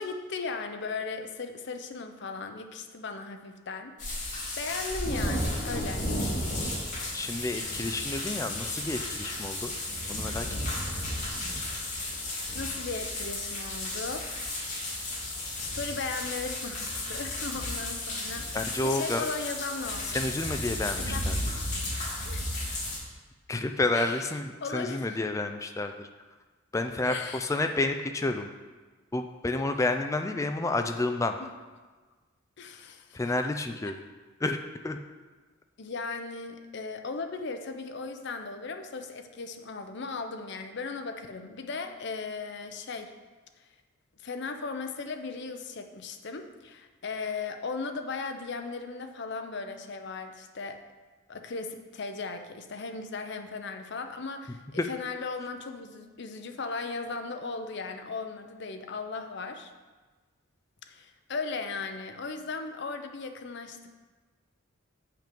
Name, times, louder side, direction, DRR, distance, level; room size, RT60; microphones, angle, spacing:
voice 1, 0.0-6.1 12.5-14.3 15.6-18.6 18.8-20.2 21.0-21.2 22.2-22.5 23.9-24.3 24.6-25.2 27.0-27.5 31.4-31.5 32.6-33.2 35.8-43.1 44.2-50.8 51.3-59.7 60.9-64.0, left 4 dB, 60° left, 6 dB, 0.7 m, -37 dB
sound 1, 4.0-23.0, left 1 dB, 40° left, 2.5 m, -33 dB
voice 2, 7.1-9.7 10.1-10.5 18.5-19.3 20.1-21.4 23.5-26.1 26.7-28.5 29.1-31.4 33.1-34.0 34.4-34.6 34.8-35.0 54.8-54.9, left 2 dB, 15° left, 6 dB, 0.4 m, -30 dB
7.4 x 5.8 x 5.2 m, 1.3 s
head